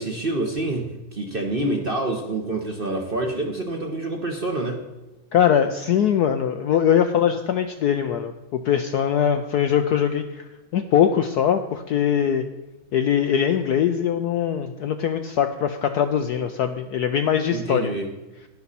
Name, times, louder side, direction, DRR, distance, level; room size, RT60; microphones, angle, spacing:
voice 1, 0.0-4.8 17.5-18.1, right 2 dB, 35° right, 2 dB, 0.9 m, -27 dB
voice 2, 5.3-10.5 10.7-12.4 12.9-17.9, left 9 dB, 70° left, 7 dB, 0.9 m, -22 dB
11.5 x 11.0 x 4.2 m, 1.1 s
omnidirectional pair, 2.2 m